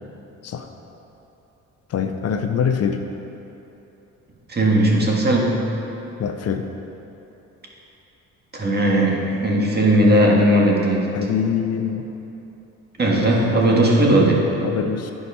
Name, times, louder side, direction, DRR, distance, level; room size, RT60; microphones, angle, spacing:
voice 1, 1.9-3.0 6.2-6.7 11.1-12.1 14.6-15.1, left 7 dB, 55° left, 6 dB, 0.6 m, -24 dB
voice 2, 4.5-5.6 8.5-11.1 13.0-14.5, right 1 dB, 35° right, -2 dB, 1.6 m, -17 dB
9.8 x 4.9 x 5.5 m, 3.0 s
cardioid pair, 90°, 30 cm